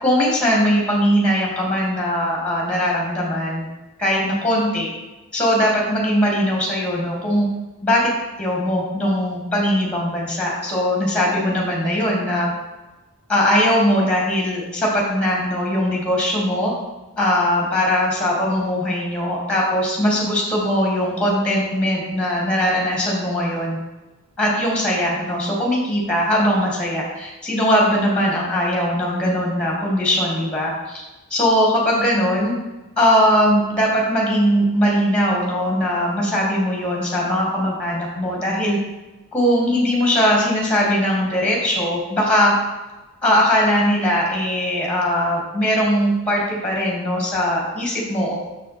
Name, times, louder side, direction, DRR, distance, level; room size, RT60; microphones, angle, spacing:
voice 1, 0.0-3.7 4.0-4.9 5.3-7.5 7.8-8.1 8.4-12.5 13.3-16.7 17.2-23.8 24.4-31.0 31.3-32.5 33.0-38.8 39.3-42.5 43.2-48.3, equal, 5° left, -3 dB, 2.3 m, -20 dB
6.7 x 6.3 x 4.5 m, 1.1 s
head